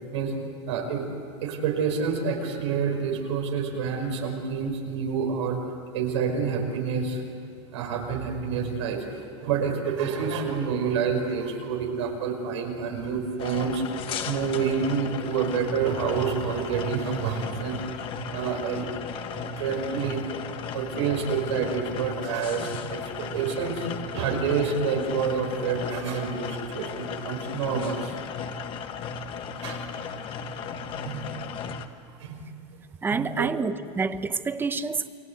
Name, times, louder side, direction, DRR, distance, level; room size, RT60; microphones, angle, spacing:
voice 1, 0.7-1.1 1.4-5.6 5.9-7.2 7.7-18.0 18.3-18.9 19.3-20.2 20.7-23.9 24.1-28.2 29.6-29.8 31.0-31.3 32.2-32.4 33.1-33.5, right 6 dB, 90° right, 5.6 m, -28 dB
sound 1, 13.4-31.9, left 6 dB, 35° left, 1.5 m, -36 dB
voice 2, 33.0-35.1, right 4 dB, 15° right, 0.9 m, -28 dB
29.5 x 23.0 x 8.1 m
supercardioid pair, 140°, 15 cm